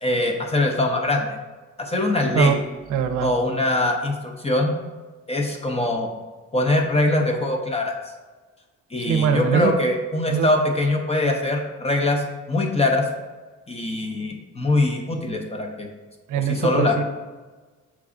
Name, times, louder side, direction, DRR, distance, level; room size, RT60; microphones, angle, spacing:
voice 1, 0.0-1.3 1.8-2.6 3.2-4.7 5.3-6.1 6.5-7.9 8.9-13.1 13.7-15.9 16.5-17.0, left 2 dB, 20° left, 2 dB, 0.6 m, -22 dB
voice 2, 2.2-2.6 2.9-3.3 9.0-9.7 10.3-10.5 16.3-17.0, right 7 dB, 80° right, 7 dB, 0.5 m, -22 dB
6.0 x 2.3 x 3.7 m, 1.3 s
cardioid pair, 90°, 30 cm